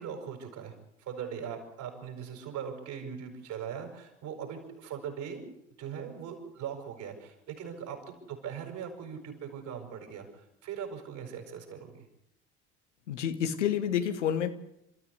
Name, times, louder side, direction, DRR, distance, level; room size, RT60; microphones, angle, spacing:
voice 1, 0.0-5.4 5.8-12.1, right 7 dB, 55° right, 4 dB, 6.7 m, -40 dB
voice 2, 13.1-14.5, left 9 dB, 80° left, 8 dB, 1.7 m, -29 dB
29.0 x 14.0 x 8.3 m, 0.81 s
figure-of-eight pair, 65°, 36 cm